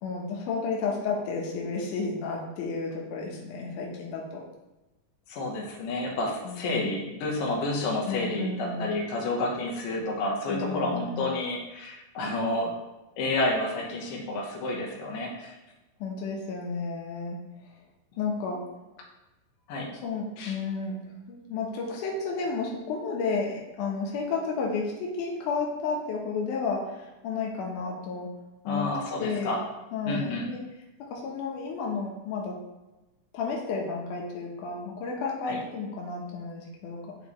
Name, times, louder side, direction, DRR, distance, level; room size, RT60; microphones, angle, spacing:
voice 1, 0.0-4.4 6.4-6.9 8.1-8.9 10.5-11.2 16.0-17.4 18.2-18.6 19.9-21.0 21.3-28.3 28.6-28.9 29.2-29.6 29.9-30.6 31.1-32.6 33.3-37.1, left 4 dB, 75° left, -2 dB, 2.5 m, -32 dB
voice 2, 5.3-12.7 13.2-15.5 19.7-19.9 20.4-20.6 28.7-29.6 30.1-30.5 35.4-35.6, left 2 dB, 90° left, -2 dB, 2.7 m, -30 dB
10.5 x 4.0 x 3.1 m, 1.0 s
omnidirectional pair, 3.8 m